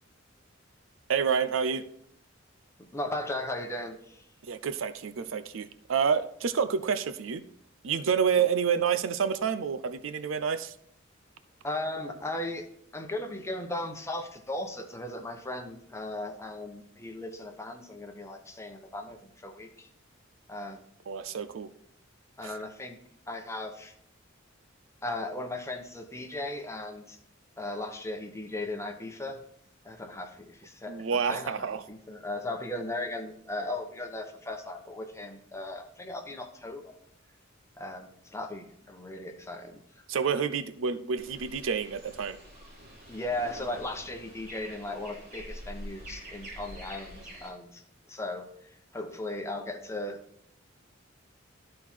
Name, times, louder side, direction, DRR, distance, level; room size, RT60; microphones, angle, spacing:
voice 1, 1.1-1.8 4.4-7.4 7.8-10.7 21.1-21.7 22.4-22.6 30.9-31.8 40.1-42.4, right 6 dB, 75° right, 12 dB, 0.5 m, -28 dB
voice 2, 2.8-4.3 11.6-12.7 12.9-19.9 20.5-20.8 22.4-23.0 23.3-23.9 25.0-27.2 27.6-29.4 29.8-36.9 37.8-39.8 43.1-47.8 48.1-48.5 48.9-50.2, left 1 dB, 15° left, 3 dB, 1.0 m, -37 dB
sound 1, 41.2-47.5, equal, 50° right, 3.2 m, -46 dB
12.5 x 4.3 x 4.5 m, 0.67 s
head